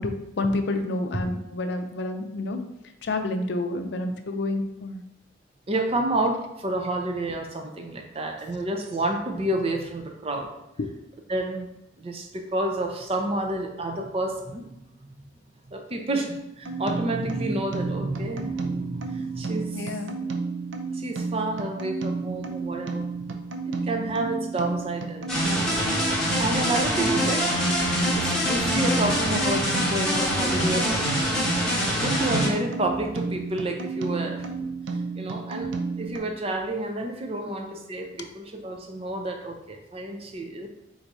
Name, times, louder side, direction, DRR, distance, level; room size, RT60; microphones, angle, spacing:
voice 1, 0.0-2.6 3.0-5.0 10.8-10.9 19.7-20.2 28.3-28.4, left 2 dB, 60° left, 5 dB, 0.5 m, -29 dB
voice 2, 5.7-10.5 11.3-11.7 12.0-14.6 15.7-19.8 20.9-23.1 23.7-25.7 26.4-27.5 28.1-31.1 32.0-34.7 35.2-35.7 36.0-40.7, right 1 dB, 30° right, 4 dB, 0.5 m, -29 dB
sound 1, 16.6-36.2, right 4 dB, 80° right, 0.5 m, -32 dB
sound 2, 25.3-32.5, left 1 dB, 5° left, 1.0 m, -25 dB
3.9 x 2.7 x 4.6 m, 0.86 s
head